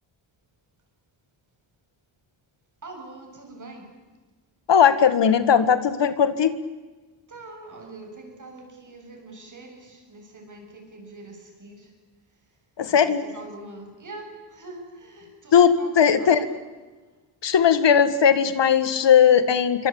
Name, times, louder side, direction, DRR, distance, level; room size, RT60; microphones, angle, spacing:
voice 1, 2.8-3.9 7.3-11.9 12.9-16.6, right 2 dB, 40° right, 3 dB, 7.3 m, -43 dB
voice 2, 4.7-6.5 12.8-13.2 15.5-16.4 17.4-19.9, left 7 dB, 65° left, 12 dB, 1.8 m, -18 dB
28.0 x 24.5 x 8.7 m, 1.3 s
wide cardioid pair, 160°, 47 cm